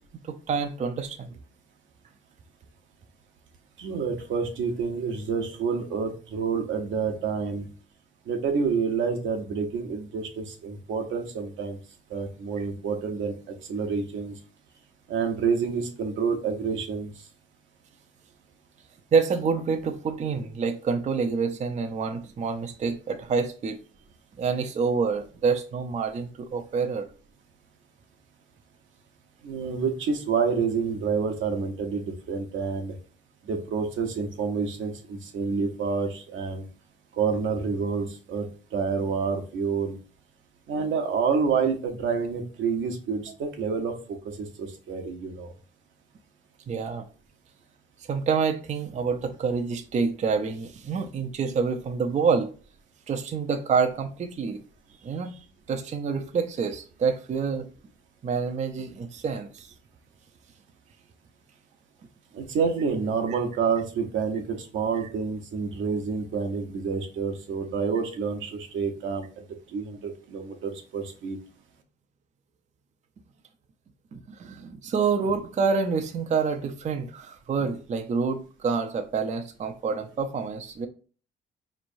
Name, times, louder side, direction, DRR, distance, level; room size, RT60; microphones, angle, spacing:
voice 1, 0.2-1.4 19.1-23.8 24.4-27.1 46.7-47.0 48.0-52.5 53.1-54.6 55.0-55.4 55.7-57.7 58.2-59.7 63.3-63.4 64.9-65.1 74.1-80.9, right 5 dB, 35° right, 0.5 m, -27 dB
voice 2, 3.8-7.7 8.3-11.8 12.1-14.3 15.1-17.1 29.4-32.9 33.5-36.6 37.2-40.0 40.7-43.9 44.4-45.5 62.3-69.3 69.7-71.4, right 5 dB, 75° right, 0.8 m, -28 dB
4.4 x 3.1 x 2.5 m
cardioid pair, 90°, 20 cm